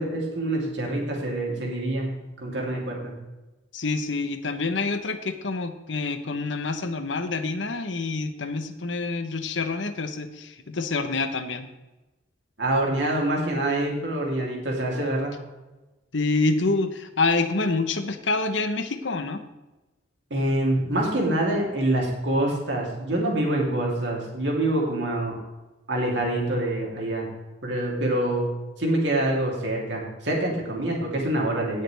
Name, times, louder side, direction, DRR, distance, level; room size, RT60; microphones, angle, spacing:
voice 1, 0.0-3.1 12.6-15.4 20.3-25.4 25.9-27.3 27.6-28.5 28.8-31.8, right 1 dB, 75° right, -2 dB, 3.1 m, -26 dB
voice 2, 3.7-11.7 16.1-19.4, left 3 dB, 85° left, 9 dB, 1.0 m, -27 dB
17.5 x 6.6 x 3.4 m, 1.1 s
head